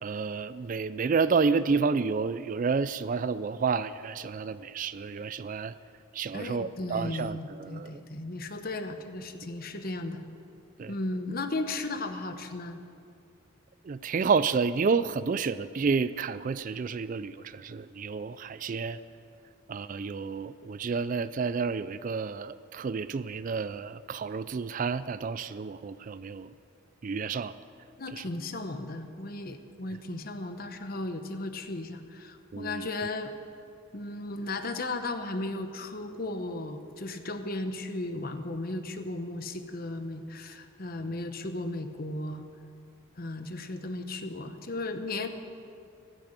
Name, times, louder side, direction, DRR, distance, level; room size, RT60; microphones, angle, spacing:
voice 1, 0.0-5.7 6.1-8.0 10.8-10.9 13.8-19.0 19.7-26.5 27.0-27.5 28.1-28.2 32.5-32.9, right 5 dB, 40° right, 15 dB, 0.3 m, -30 dB
voice 2, 6.3-10.2 10.9-12.8 28.0-33.3 33.9-42.5 43.2-45.3, left 2 dB, 45° left, 8 dB, 1.0 m, -35 dB
15.5 x 12.5 x 6.6 m, 2.4 s
head